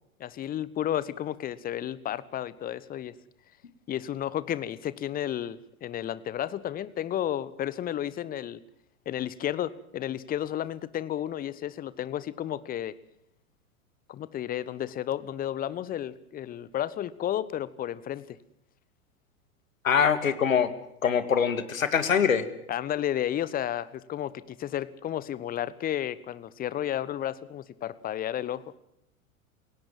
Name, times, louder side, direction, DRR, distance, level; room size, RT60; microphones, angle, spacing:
voice 1, 0.2-3.1 3.9-8.6 9.1-13.0 14.1-18.4 22.7-28.7, left 11 dB, 20° left, 18 dB, 1.1 m, -32 dB
voice 2, 19.8-20.7 21.0-22.5, left 7 dB, 70° left, 12 dB, 2.3 m, -23 dB
28.5 x 17.5 x 7.5 m, 0.80 s
figure-of-eight pair, 95°, 42 cm